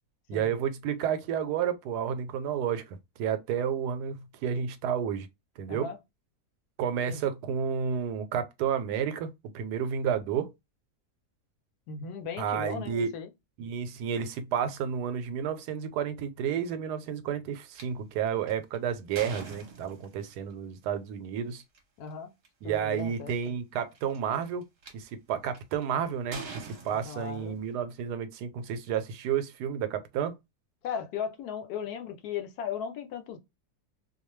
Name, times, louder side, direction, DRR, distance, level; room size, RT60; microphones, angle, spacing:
voice 1, 0.3-5.3 5.6-5.9 6.8-9.3 9.5-10.5 12.4-13.1 13.6-21.6 22.6-24.6 24.9-30.4, right 8 dB, 85° right, 1.1 m, -31 dB
voice 2, 11.9-13.3 22.0-22.3 22.6-23.6 26.9-27.6 30.8-33.4, left 7 dB, 80° left, 1.1 m, -37 dB
sound 1, 17.8-17.9 18.5-20.3 21.6-21.8 22.4-22.5 22.7-23.2 23.9-24.9 25.5-25.8 26.3-27.7, right 4 dB, 50° right, 0.9 m, -43 dB
2.5 x 2.3 x 3.0 m
omnidirectional pair, 1.7 m